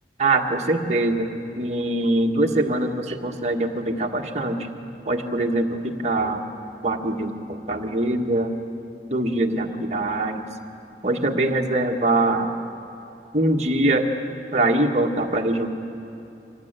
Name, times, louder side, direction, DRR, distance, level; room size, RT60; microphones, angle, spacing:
voice 1, 0.2-1.3 1.5-4.7 5.0-6.4 6.8-8.5 9.1-10.5 11.0-12.5 13.3-14.1 14.5-15.7, right 2 dB, 40° right, 1 dB, 1.7 m, -23 dB
25.0 x 19.5 x 9.0 m, 2.7 s
head